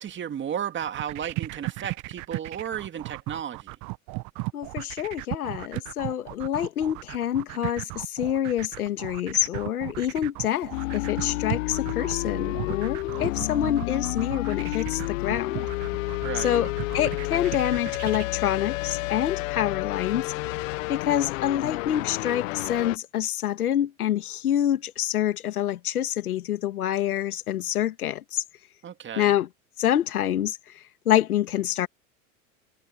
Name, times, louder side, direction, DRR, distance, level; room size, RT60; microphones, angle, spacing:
voice 1, 0.0-3.7 16.2-16.6 28.8-29.3, right 9 dB, 25° right, 2.1 m, -33 dB
sound 1, 0.8-18.3, right 24 dB, 40° right, 0.8 m, -36 dB
voice 2, 4.5-15.7 16.3-20.3 20.9-28.4 29.2-29.5 29.8-31.9, left 11 dB, 85° left, 2.3 m, -27 dB
sound 2, 10.7-23.0, left 21 dB, 60° left, 0.6 m, -30 dB
hypercardioid pair, 110°, 43 cm